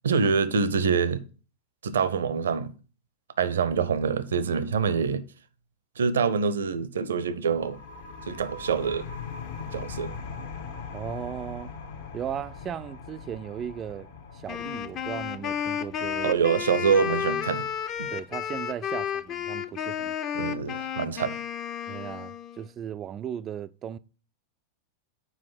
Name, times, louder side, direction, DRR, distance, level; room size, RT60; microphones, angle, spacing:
voice 1, 0.0-1.2 1.8-2.7 3.4-5.2 6.0-7.8 8.3-9.1 9.7-10.2 16.2-17.6 18.0-18.1 20.3-21.4, right 6 dB, 65° right, 0.6 m, -25 dB
sound 1, 7.5-18.9, left 5 dB, 60° left, 1.1 m, -41 dB
voice 2, 10.9-11.7 12.1-14.1 14.3-16.4 18.1-20.2 21.9-24.0, right 9 dB, 30° right, 0.3 m, -36 dB
Wind instrument woodwind instrument, 14.5-22.6, left 9 dB, 35° left, 0.6 m, -32 dB
5.7 x 4.9 x 5.7 m
figure-of-eight pair, 90°, 0 cm